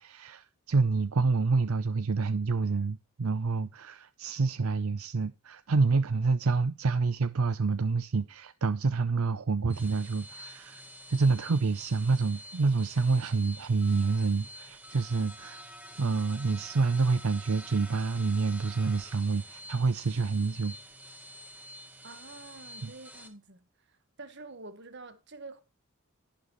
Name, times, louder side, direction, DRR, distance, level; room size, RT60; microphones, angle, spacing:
voice 1, 0.0-10.8 11.1-15.6 16.0-20.8 22.8-22.9, right 4 dB, 80° right, 0.6 m, -28 dB
sound 1, 9.6-23.3, equal, 10° right, 1.7 m, -48 dB
voice 2, 22.0-25.6, right 3 dB, 55° right, 1.6 m, -48 dB
11.5 x 11.0 x 3.1 m
head